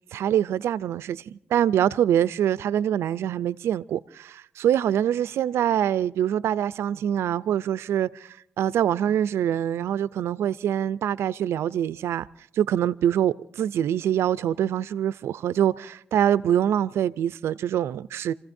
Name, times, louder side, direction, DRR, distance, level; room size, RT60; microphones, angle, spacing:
voice 1, 0.1-12.3 12.6-18.3, right 10 dB, 85° right, 0.5 m, -24 dB
29.5 x 15.5 x 2.7 m
cardioid pair, 60°, 4 cm